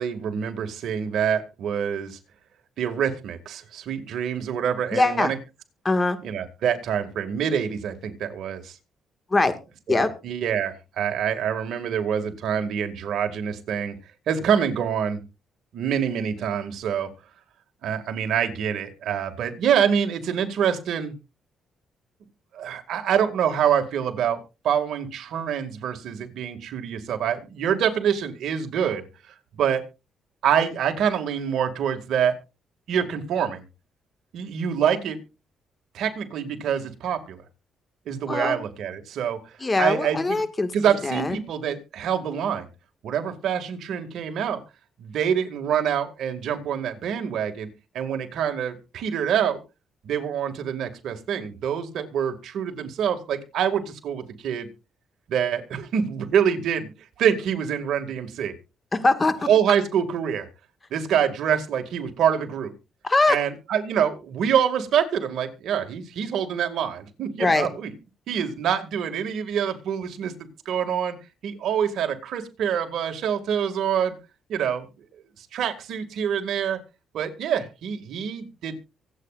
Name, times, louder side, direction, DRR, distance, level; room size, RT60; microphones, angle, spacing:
voice 1, 0.0-2.2 2.8-5.4 6.2-8.8 9.9-14.0 14.3-15.2 15.7-17.1 17.8-21.1 22.5-24.4 24.6-29.8 30.4-32.4 32.9-33.6 34.3-35.2 35.9-37.4 38.1-39.4 39.8-40.4 40.7-42.7 43.0-44.6 45.0-47.7 47.9-49.6 50.0-54.7 55.3-56.9 57.2-58.5 59.5-60.5 60.9-62.7 63.3-67.9 68.3-71.2 71.4-74.2 74.5-74.8 75.4-76.8 77.1-78.7, right 8 dB, 75° right, 5 dB, 2.2 m, -26 dB
voice 2, 4.9-5.3 5.8-6.2 9.3-9.5 9.9-10.1 38.3-38.6 39.6-40.7 41.0-41.4 58.9-59.5 63.0-63.4 67.4-67.7, left 2 dB, 25° left, 9 dB, 1.9 m, -22 dB
24.5 x 8.7 x 2.5 m, 0.29 s
cardioid pair, 90°, 0 cm